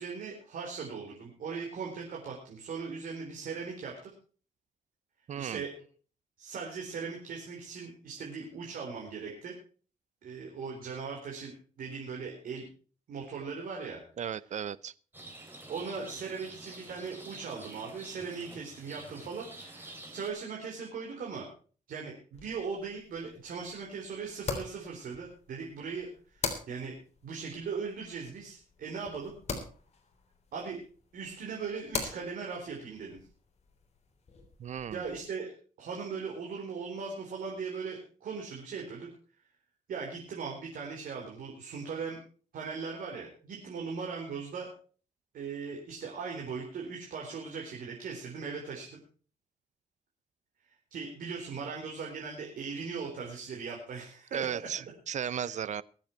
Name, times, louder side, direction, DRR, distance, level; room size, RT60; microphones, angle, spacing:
voice 1, 0.0-4.1 5.4-5.7 6.4-9.5 10.2-12.7 13.1-14.0 15.7-21.5 21.9-26.9 27.2-29.3 30.5-30.8 31.1-33.2 34.9-35.5 35.8-39.1 39.9-42.2 42.5-44.7 45.3-49.0 50.9-54.5 55.2-55.6, right 5 dB, 85° right, -1 dB, 4.1 m, -39 dB
voice 2, 5.3-5.6 14.2-14.9 34.6-35.0 54.3-55.8, right 8 dB, 55° right, 19 dB, 0.6 m, -35 dB
Rain, 15.1-20.3, right 1 dB, 15° right, 3.5 m, -48 dB
sound 1, 22.3-35.2, left 4 dB, 50° left, 3.6 m, -43 dB
23.0 x 7.9 x 4.5 m, 0.40 s
cardioid pair, 120°, 14 cm